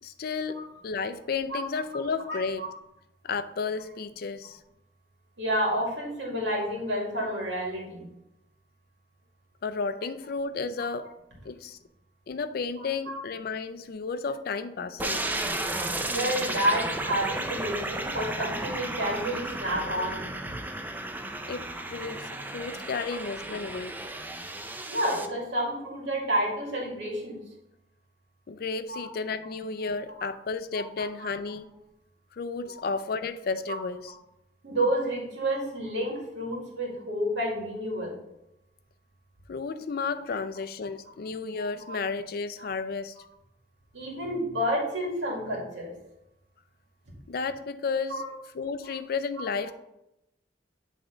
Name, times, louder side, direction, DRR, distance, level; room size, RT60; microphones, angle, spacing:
voice 1, 0.0-2.6 3.2-4.6 9.6-11.1 11.4-11.8 12.3-15.2 21.5-23.9 28.5-31.7 32.3-34.1 39.5-43.2 47.3-48.2 48.5-49.7, left 4 dB, 55° left, 12 dB, 0.4 m, -32 dB
voice 2, 2.3-2.7 5.4-8.1 10.8-10.9 12.8-13.2 16.0-20.2 24.9-27.4 28.9-29.1 29.8-29.9 30.7-31.3 33.7-33.8 34.6-38.2 41.6-42.0 42.6-42.7 43.9-45.9 48.1-48.3, equal, 85° right, -3 dB, 2.1 m, -30 dB
sound 1, 15.0-25.3, right 2 dB, 10° right, 0.4 m, -33 dB
8.1 x 3.6 x 3.8 m, 0.87 s
head